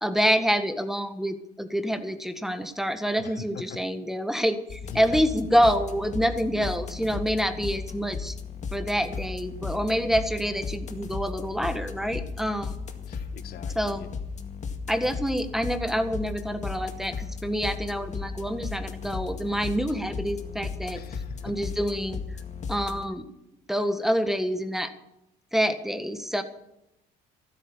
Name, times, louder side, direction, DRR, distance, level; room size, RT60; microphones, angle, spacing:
voice 1, 0.0-8.3 8.7-12.7 13.7-14.0 14.9-21.0 21.4-22.2 22.7-23.2 23.7-24.9 25.5-26.4, equal, ahead, 9 dB, 1.6 m, -27 dB
voice 2, 3.2-3.8 4.9-5.2 13.1-14.1 20.9-21.4, left 9 dB, 65° left, 13 dB, 1.3 m, -42 dB
sound 1, 4.7-23.0, left 5 dB, 45° left, 2.0 m, -36 dB
14.5 x 13.0 x 7.1 m, 0.86 s
cardioid pair, 110°, 17 cm